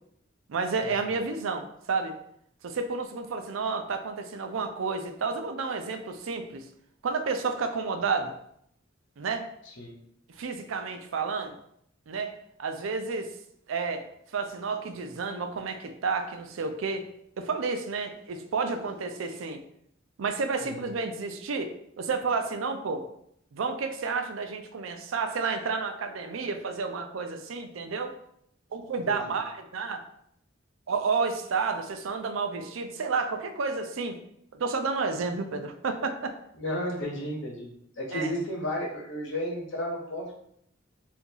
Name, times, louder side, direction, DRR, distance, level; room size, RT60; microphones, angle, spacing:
voice 1, 0.5-2.1 2.6-6.6 7.0-8.3 9.2-9.5 10.4-11.6 12.1-12.3 12.6-13.3 13.7-14.1 14.3-17.1 17.4-19.6 20.2-23.1 23.5-28.1 28.7-30.0 30.9-34.2 34.5-36.4 38.1-38.3, right 4 dB, 80° right, 6 dB, 0.4 m, -31 dB
voice 2, 36.6-37.7 38.0-40.4, equal, 70° left, -1 dB, 1.0 m, -33 dB
2.8 x 2.6 x 3.8 m, 0.71 s
head